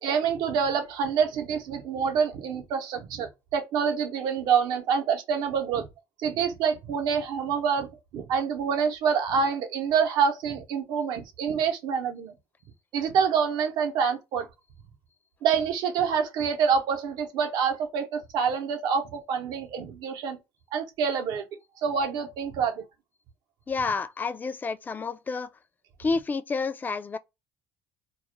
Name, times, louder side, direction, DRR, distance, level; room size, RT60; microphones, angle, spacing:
voice 1, 0.0-5.9 6.2-12.3 12.9-14.5 15.4-20.4 20.7-21.4 21.8-22.8, right 6 dB, 70° right, 0.7 m, -26 dB
voice 2, 23.7-25.5 26.0-27.2, left 4 dB, 25° left, 0.3 m, -29 dB
2.3 x 2.0 x 3.0 m
supercardioid pair, 85°, 7 cm